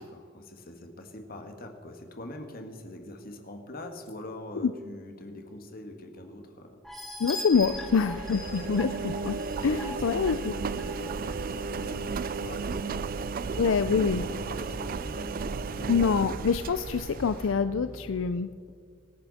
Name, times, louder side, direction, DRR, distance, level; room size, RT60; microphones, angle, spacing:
voice 1, 0.0-6.8 8.1-8.2 8.4-9.1 9.9-15.9, left 1 dB, 50° left, 5 dB, 1.8 m, -44 dB
sound 1, 6.8-11.3 11.8-11.9 12.3-12.4, left 1 dB, ahead, 1.7 m, -41 dB
voice 2, 7.2-9.4 9.6-10.5 13.6-14.2 15.9-18.5, left 5 dB, 80° left, 11 dB, 0.5 m, -26 dB
Engine, 7.5-17.5, right 4 dB, 45° right, 0.4 m, -34 dB
sound 2, 13.1-18.3, equal, 20° right, 4.2 m, -44 dB
24.5 x 10.0 x 4.2 m, 2.2 s
head